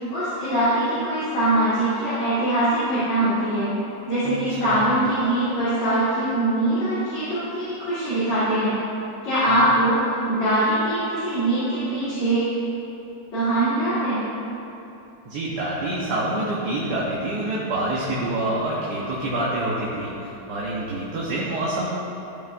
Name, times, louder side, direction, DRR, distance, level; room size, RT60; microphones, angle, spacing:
voice 1, 0.0-3.7 4.0-8.8 9.2-12.5 13.3-14.3, right 1 dB, 85° left, -13 dB, 2.7 m, -22 dB
voice 2, 4.2-4.8 9.5-9.6 15.3-21.9, right 1 dB, 65° right, -6 dB, 1.5 m, -27 dB
14.5 x 5.5 x 2.6 m, 2.9 s
omnidirectional pair, 1.9 m